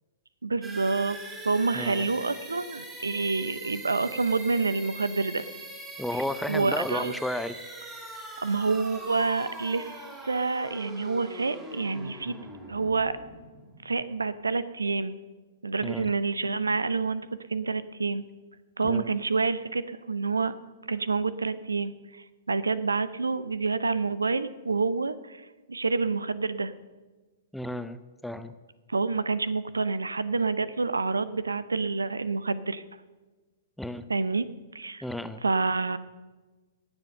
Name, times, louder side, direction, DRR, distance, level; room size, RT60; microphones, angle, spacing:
voice 1, 0.4-1.2 1.4-5.4 6.1-7.1 8.4-12.4 12.7-13.2 13.8-15.2 15.6-18.2 18.8-20.5 20.8-26.7 28.9-32.8 34.1-34.5 34.7-35.0 35.4-36.0, right 4 dB, 80° right, 16 dB, 0.6 m, -28 dB
sound 1, 0.6-14.3, right 2 dB, 15° right, 2.6 m, -42 dB
voice 2, 1.7-2.1 6.0-7.6 15.8-16.1 18.8-19.1 27.5-28.5 33.8-34.1 35.0-35.4, left 1 dB, ahead, 11 dB, 0.6 m, -33 dB
18.5 x 7.2 x 6.6 m, 1.3 s
figure-of-eight pair, 110°, 0 cm